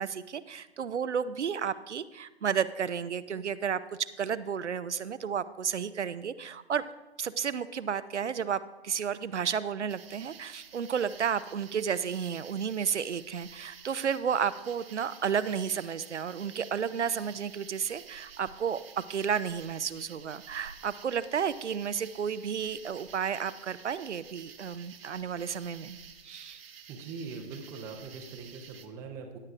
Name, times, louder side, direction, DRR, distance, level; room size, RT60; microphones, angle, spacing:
voice 1, 0.0-6.9 7.2-26.0 26.2-26.6, right 7 dB, 85° right, 14 dB, 0.6 m, -32 dB
sound 1, 9.9-28.9, right 7 dB, 60° right, 0.9 m, -51 dB
voice 2, 26.9-29.4, right 4 dB, 10° right, 3 dB, 0.5 m, -42 dB
16.5 x 9.5 x 2.5 m, 1.1 s
figure-of-eight pair, 130°, 34 cm